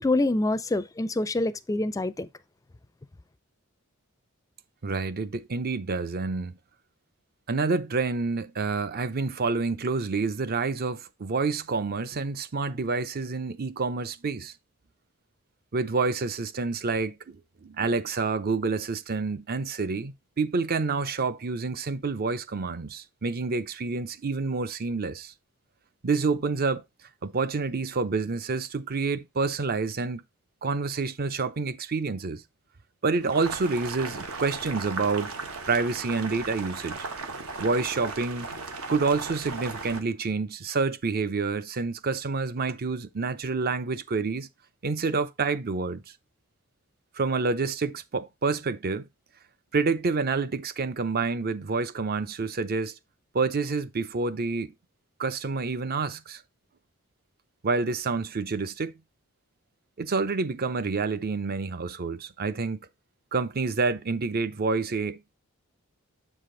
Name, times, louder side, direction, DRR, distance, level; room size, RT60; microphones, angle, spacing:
voice 1, 0.0-2.3, left 2 dB, 15° left, 0.4 m, -26 dB
voice 2, 4.8-6.5 7.5-14.5 15.7-25.3 26.0-26.8 27.2-30.2 30.6-32.4 33.0-35.3 35.7-37.0 37.6-38.5 38.9-44.5 44.8-46.0 47.1-49.1 49.7-53.0 53.3-54.7 55.2-56.4 57.6-58.9 60.0-62.8 63.3-65.3, right 4 dB, 45° right, 0.6 m, -28 dB
Boiling, 33.2-40.0, right 3 dB, 80° right, 1.3 m, -37 dB
7.5 x 5.0 x 3.8 m
head